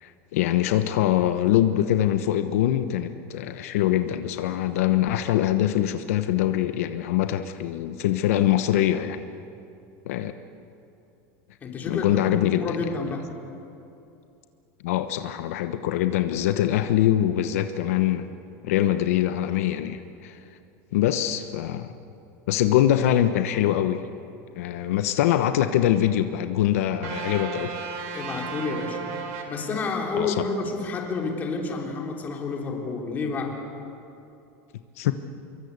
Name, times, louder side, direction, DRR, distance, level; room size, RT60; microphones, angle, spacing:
voice 1, 0.0-9.2 10.1-10.3 11.9-12.8 14.8-18.3 18.6-20.4 20.9-21.9 22.5-24.0 24.5-27.8 30.1-30.4 35.0-35.1, left 12 dB, 85° left, 9 dB, 1.1 m, -23 dB
voice 2, 11.6-13.2 28.1-29.0 29.5-33.6, left 4 dB, 20° left, 1 dB, 3.4 m, -30 dB
sound 1, 27.0-30.3, right 5 dB, 75° right, 4.2 m, -35 dB
26.0 x 22.5 x 8.2 m, 2.7 s
supercardioid pair, 170°, 8 cm